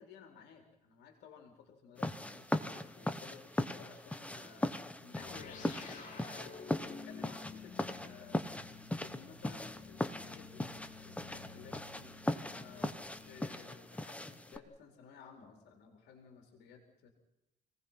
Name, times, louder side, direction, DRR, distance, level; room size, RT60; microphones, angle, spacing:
voice 1, 0.0-8.7 9.0-17.1, left 6 dB, 80° left, 3 dB, 4.2 m, -56 dB
sound 1, 2.0-14.6, left 1 dB, 10° left, 1.4 m, -39 dB
sound 2, 5.2-14.0, left 5 dB, 50° left, 6.7 m, -52 dB
28.5 x 19.0 x 5.8 m, 0.93 s
cardioid pair, 110°, 17 cm